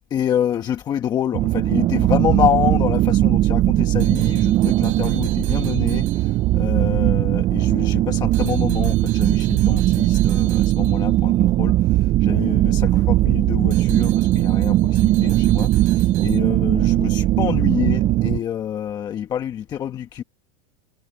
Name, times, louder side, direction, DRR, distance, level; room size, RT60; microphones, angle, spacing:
voice 1, 0.1-20.2, left 9 dB, 25° left, 1.2 m, -27 dB
sound 1, 1.3-18.4, right 15 dB, 25° right, 0.4 m, -19 dB
sound 2, 4.0-6.8 8.3-11.3 13.7-16.4, right 17 dB, 70° right, 7.9 m, -42 dB
supercardioid pair, 155°, 18 cm